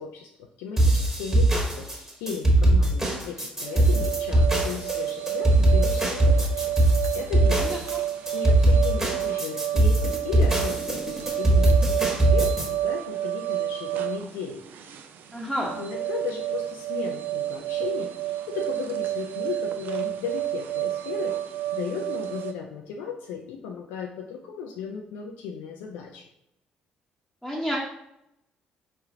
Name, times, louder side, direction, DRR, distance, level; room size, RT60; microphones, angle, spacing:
voice 1, 0.0-7.7 8.3-15.0 15.8-26.2, left 6 dB, 70° left, 1 dB, 0.4 m, -36 dB
sound 1, 0.8-12.7, right 1 dB, 15° right, 1.3 m, -21 dB
sound 2, 3.7-22.5, right 13 dB, 55° right, 0.4 m, -30 dB
voice 2, 15.3-15.8 27.4-27.8, equal, ahead, -6 dB, 0.9 m, -29 dB
4.6 x 3.0 x 2.7 m, 0.83 s
hypercardioid pair, 50°, 4 cm